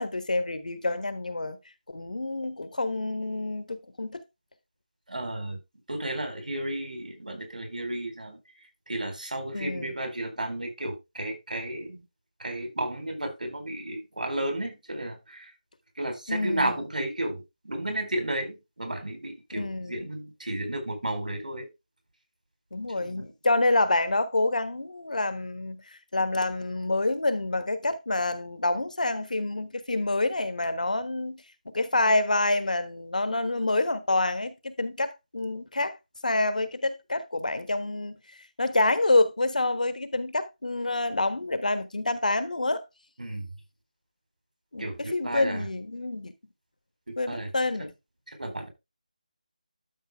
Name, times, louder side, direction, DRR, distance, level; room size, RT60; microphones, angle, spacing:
voice 1, 0.0-1.6 1.9-4.2 9.5-9.9 16.3-16.7 19.5-20.0 22.7-25.8 26.1-35.9 36.2-38.2 38.6-42.8 44.7-46.3 47.2-47.9, left 2 dB, 75° left, 1.4 m, -27 dB
voice 2, 5.1-5.6 5.9-8.4 8.9-12.0 12.4-15.5 16.0-21.7 23.0-23.2 43.2-43.5 44.8-45.6 47.1-47.5 48.4-48.7, right 1 dB, 85° right, 4.2 m, -33 dB
12.0 x 5.2 x 3.6 m
figure-of-eight pair, 175°, 4 cm